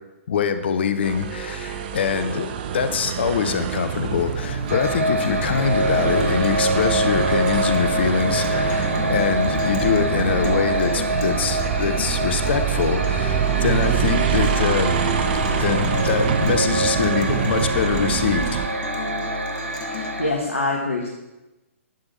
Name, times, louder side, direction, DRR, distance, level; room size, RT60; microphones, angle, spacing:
voice 1, 0.3-2.5 2.7-14.9 15.6-18.6, left 7 dB, 50° left, 9 dB, 1.0 m, -24 dB
sound 1, 1.0-18.7, right 8 dB, 40° right, 0.9 m, -25 dB
Guitar, 4.2-20.2, left 7 dB, 35° left, 1.2 m, -36 dB
sound 2, 4.7-20.3, right 1 dB, 65° right, 1.4 m, -26 dB
voice 2, 19.9-21.1, left 2 dB, 75° left, -1 dB, 1.8 m, -25 dB
11.5 x 8.8 x 4.4 m, 1.0 s
figure-of-eight pair, 120°, 8 cm